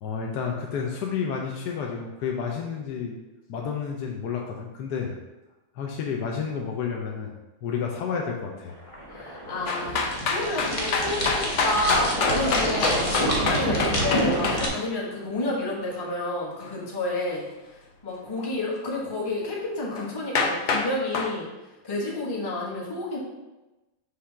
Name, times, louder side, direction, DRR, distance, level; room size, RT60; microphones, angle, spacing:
voice 1, 0.0-3.2 3.5-5.1 5.7-7.3 7.6-8.8, left 6 dB, 65° left, 0 dB, 1.1 m, -30 dB
sound 1, 8.7-14.7, equal, 40° left, 0.4 m, -27 dB
voice 2, 9.1-10.0 10.3-17.4 18.0-21.5 21.8-23.2, left 2 dB, 15° left, -3 dB, 0.8 m, -30 dB
sound 2, 9.7-14.6 20.0-20.1 20.3-20.9 21.1-21.3, left 4 dB, 85° left, 0.6 m, -25 dB
5.7 x 3.3 x 5.7 m, 1.1 s
omnidirectional pair, 2.3 m